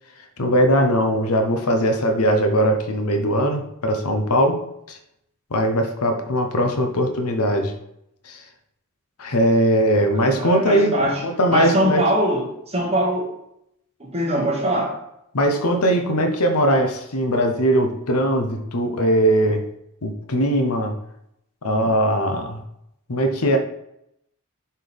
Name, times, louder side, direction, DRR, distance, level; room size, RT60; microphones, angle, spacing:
voice 1, 0.4-4.6 4.9-5.0 5.5-7.7 8.2-8.4 9.2-12.1 15.3-19.6 20.0-21.0 21.6-22.6 23.1-23.6, equal, 75° left, 5 dB, 0.9 m, -20 dB
voice 2, 10.1-11.2 11.5-13.3 14.0-15.0, right 1 dB, 30° right, -3 dB, 1.8 m, -22 dB
7.5 x 4.5 x 3.5 m, 0.78 s
head